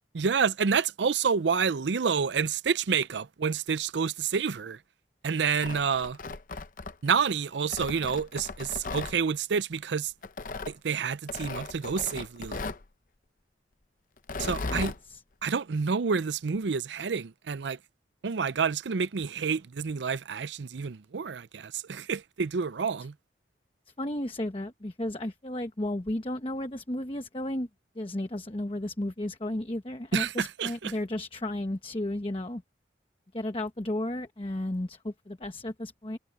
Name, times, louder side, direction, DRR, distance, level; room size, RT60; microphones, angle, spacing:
voice 1, 0.1-4.8 5.2-6.2 7.0-10.1 10.7-12.7 14.4-14.9 15.4-17.8 18.2-23.1 30.1-30.9, right 6 dB, 85° right, 0.5 m, -28 dB
Tearing, 5.4-7.2 7.7-9.2 10.2-10.7 11.3-12.9 14.2-15.0, left 3 dB, 50° left, 0.6 m, -37 dB
voice 2, 14.6-15.2 24.0-27.7 27.9-32.6 33.3-36.2, left 1 dB, 30° left, 1.1 m, -33 dB
head